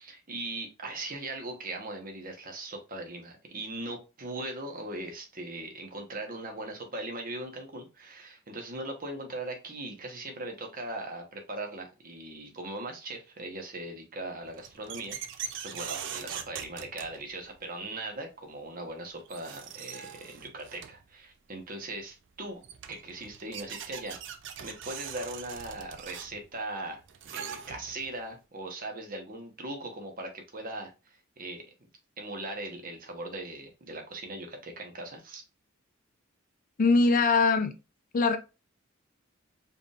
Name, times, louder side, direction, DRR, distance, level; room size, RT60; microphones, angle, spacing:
voice 1, 0.0-22.6 22.9-24.2 24.6-31.6 32.2-35.4, right 2 dB, 45° right, 1.1 m, -39 dB
sound 1, 14.4-17.6 18.9-19.0 19.3-21.1 22.3-22.4 22.6-28.1, right 8 dB, 60° right, 0.5 m, -42 dB
voice 2, 36.8-37.7 38.1-38.4, left 3 dB, 40° left, 0.4 m, -22 dB
4.9 x 3.4 x 2.4 m
head